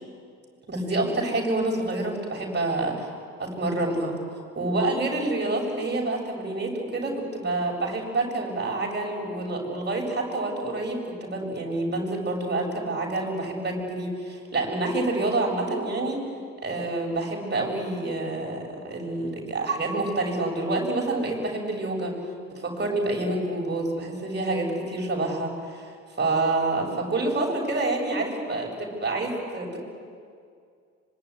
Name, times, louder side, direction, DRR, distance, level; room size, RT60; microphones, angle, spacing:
voice 1, 0.7-3.1 3.4-4.1 4.6-16.2 16.6-22.1 22.5-25.9 26.2-29.8, right 2 dB, 25° right, 0 dB, 7.8 m, -27 dB
25.5 x 23.5 x 9.8 m, 2.2 s
figure-of-eight pair, 55°, 39 cm